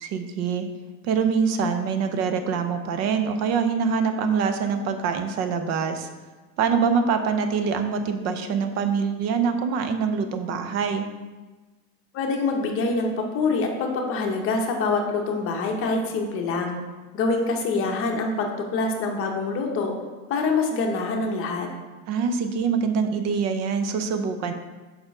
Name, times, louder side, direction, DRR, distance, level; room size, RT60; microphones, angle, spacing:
voice 1, 0.0-0.6 1.0-6.1 6.6-11.1 22.1-24.5, right 6 dB, 45° right, 8 dB, 0.6 m, -24 dB
voice 2, 12.1-16.8 17.1-19.9 20.3-21.7, left 3 dB, 35° left, 2 dB, 0.8 m, -25 dB
5.1 x 4.4 x 5.8 m, 1.2 s
cardioid pair, 175°, 38 cm